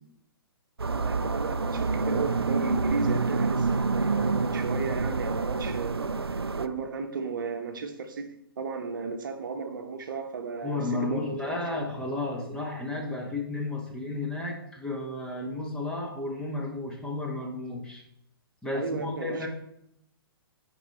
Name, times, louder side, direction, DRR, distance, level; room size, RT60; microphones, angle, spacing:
sound 1, 0.8-6.7, right 3 dB, 85° right, 0.4 m, -27 dB
voice 1, 0.9-6.1 6.6-11.8 18.7-19.5, right 5 dB, 55° right, 6 dB, 1.0 m, -34 dB
voice 2, 10.6-18.0 18.6-19.5, left 2 dB, 5° left, -1 dB, 1.5 m, -33 dB
11.0 x 4.7 x 4.2 m, 0.76 s
figure-of-eight pair, 120°, 13 cm